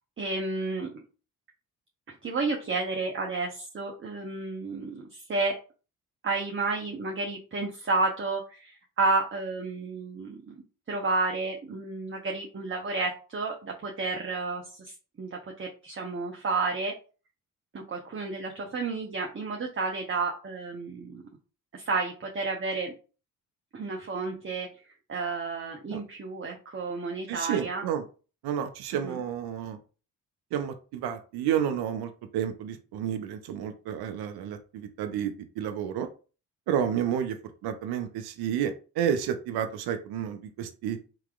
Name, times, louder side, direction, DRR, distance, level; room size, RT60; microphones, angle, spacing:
voice 1, 0.2-1.0 2.2-5.6 6.2-10.6 10.9-16.9 17.7-21.2 21.7-22.9 23.7-24.7 25.1-27.8 29.0-29.2, right 3 dB, 30° right, 2 dB, 0.8 m, -31 dB
voice 2, 27.3-28.0 28.4-29.8 30.5-36.1 36.7-37.4 37.6-41.0, right 9 dB, 65° right, 8 dB, 0.6 m, -30 dB
3.8 x 2.9 x 2.4 m, 0.35 s
hypercardioid pair, 45°, 41 cm